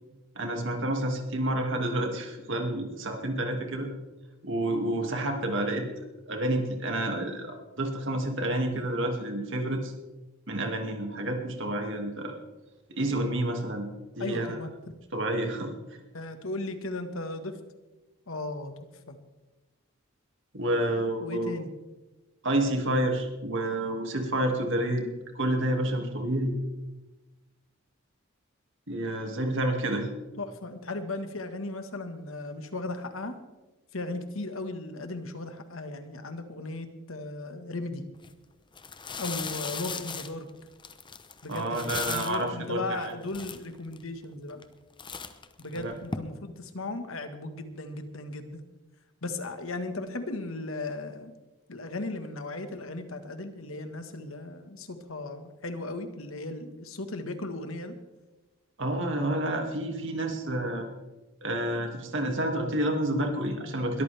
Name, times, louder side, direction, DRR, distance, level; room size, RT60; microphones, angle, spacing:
voice 1, 0.4-3.9 4.4-5.9 6.3-9.9 10.5-12.4 12.9-13.9 14.2-14.6 15.1-15.7 20.5-21.5 22.4-25.1 25.3-26.5 28.9-30.1 41.5-43.0 45.7-45.9 58.8-60.9 61.4-64.0, right 1 dB, 60° right, 3 dB, 2.4 m, -29 dB
voice 2, 14.2-14.7 16.1-17.6 18.3-18.7 19.1-19.2 21.2-21.7 30.4-33.3 33.9-38.0 39.2-40.5 41.4-44.6 45.6-48.6 49.2-51.3 51.7-57.9, left 2 dB, 75° left, 8 dB, 1.6 m, -36 dB
sound 1, 38.1-38.3 38.7-42.5 43.0-43.1 43.3-44.0 44.5-44.7 45.0-46.2, left 5 dB, 25° left, 0.9 m, -37 dB
22.0 x 13.5 x 3.5 m, 1.1 s
head